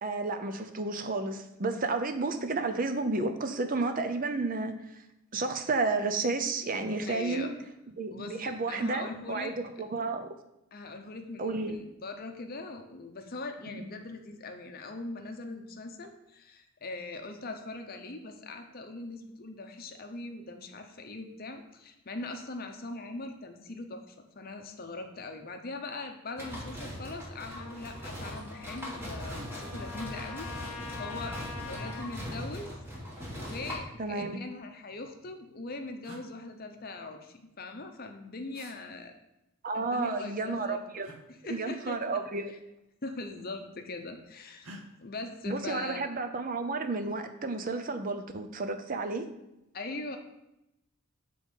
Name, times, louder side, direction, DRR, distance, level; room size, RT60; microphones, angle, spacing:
voice 1, 0.0-4.8 5.3-7.5 8.0-10.3 11.4-11.8 13.7-13.9 34.0-34.4 39.6-41.1 41.5-42.5 45.5-49.3, right 3 dB, 40° right, 7 dB, 0.5 m, -31 dB
voice 2, 7.0-7.5 8.1-9.5 10.7-31.4 31.7-32.7 33.4-39.1 39.7-40.8 41.3-42.2 42.5-42.6 43.0-46.0 49.7-50.2, left 2 dB, 40° left, 5 dB, 0.7 m, -41 dB
sound 1, 26.4-33.7, equal, 10° right, 1.2 m, -40 dB
Trumpet, 27.6-32.1, left 4 dB, 85° left, 0.9 m, -45 dB
sound 2, 29.2-29.8 30.5-30.7 32.0-32.6 33.8-34.6 35.5-35.6 36.0-36.3 38.5-38.8 41.0-41.2 42.6-42.8 43.1-43.7 44.6-44.8, right 1 dB, 70° right, 0.9 m, -51 dB
6.8 x 3.8 x 5.4 m, 0.88 s
head